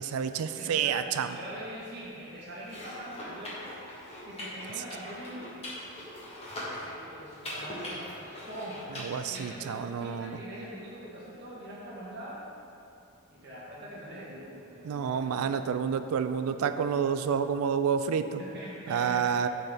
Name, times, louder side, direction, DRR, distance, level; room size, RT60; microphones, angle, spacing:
voice 1, 0.0-1.3 9.0-10.4 14.8-18.4 18.9-19.5, right 7 dB, 80° right, 10 dB, 0.3 m, -29 dB
voice 2, 0.5-3.7 4.2-5.6 6.4-6.5 6.8-8.8 9.3-12.4 13.3-15.9 18.4-19.3, equal, 50° right, -6 dB, 1.1 m, -43 dB
sound 1, 2.6-9.4, left 1 dB, 30° left, 1.4 m, -41 dB
9.7 x 4.1 x 3.4 m, 2.6 s
head